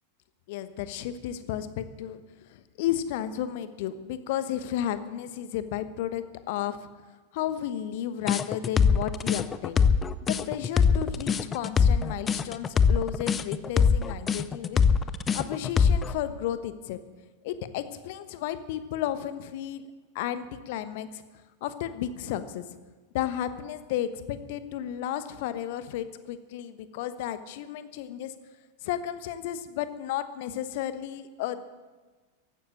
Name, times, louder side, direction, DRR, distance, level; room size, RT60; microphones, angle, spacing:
voice 1, 0.5-6.9 7.3-9.8 10.3-14.8 15.3-17.0 17.4-19.9 20.1-21.2 21.6-22.6 23.1-28.3 28.8-31.6, left 11 dB, 50° left, 12 dB, 1.1 m, -33 dB
sound 1, 8.3-16.1, left 6 dB, 20° left, 0.6 m, -22 dB
15.0 x 12.0 x 7.5 m, 1.3 s
figure-of-eight pair, 90°, 0 cm